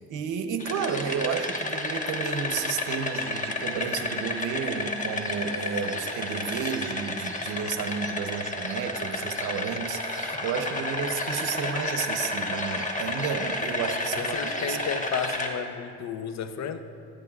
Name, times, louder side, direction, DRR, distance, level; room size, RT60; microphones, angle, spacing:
voice 1, 0.0-14.8, right 6 dB, 80° right, 7 dB, 0.9 m, -32 dB
sound 1, 0.6-15.5, left 2 dB, 25° left, 1.3 m, -31 dB
voice 2, 14.1-16.8, left 7 dB, 65° left, 9 dB, 0.8 m, -33 dB
17.5 x 13.0 x 2.4 m, 2.6 s
cardioid pair, 90°, 30 cm